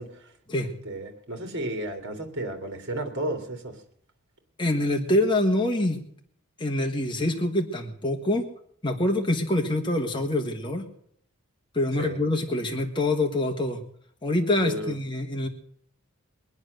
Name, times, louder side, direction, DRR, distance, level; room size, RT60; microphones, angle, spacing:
voice 1, 0.0-0.3 0.6-3.8 12.0-12.2 14.6-15.0, right 1 dB, 55° right, 6 dB, 2.7 m, -33 dB
voice 2, 4.6-6.0 6.6-8.5 8.8-10.9 11.7-13.8 14.2-15.5, left 1 dB, 20° left, 2 dB, 1.4 m, -25 dB
22.5 x 9.7 x 6.5 m, 0.66 s
head